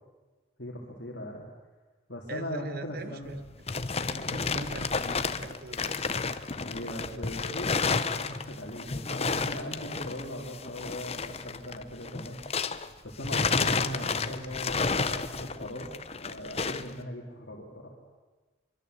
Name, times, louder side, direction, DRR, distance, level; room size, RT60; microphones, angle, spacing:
voice 1, 0.6-1.5 2.1-3.3 6.6-12.4 13.0-17.9, equal, 60° left, -2 dB, 3.3 m, -39 dB
voice 2, 2.3-3.4 4.1-5.9, right 2 dB, 50° right, 11 dB, 1.5 m, -41 dB
sound 1, 3.3-12.9 13.2-16.9, left 4 dB, 30° left, 0.9 m, -31 dB
24.0 x 24.0 x 8.1 m, 1.3 s
head